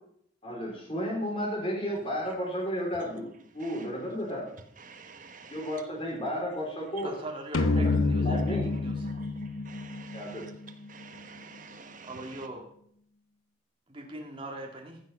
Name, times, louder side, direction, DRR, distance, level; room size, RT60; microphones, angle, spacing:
voice 1, 0.4-3.3 3.5-4.4 5.5-7.1 7.5-7.9 8.2-8.7 10.1-10.4, equal, 25° left, -1 dB, 3.6 m, -33 dB
voice 2, 4.9-5.7 9.2-9.3 9.7-10.5 10.9-12.1, right 5 dB, 40° right, 6 dB, 1.3 m, -49 dB
voice 3, 7.0-9.1 12.0-12.7 13.9-15.0, right 1 dB, 25° right, 1 dB, 1.9 m, -41 dB
sound 1, 7.5-11.0, left 3 dB, 85° left, 0.8 m, -28 dB
14.5 x 6.5 x 5.5 m, 0.66 s
head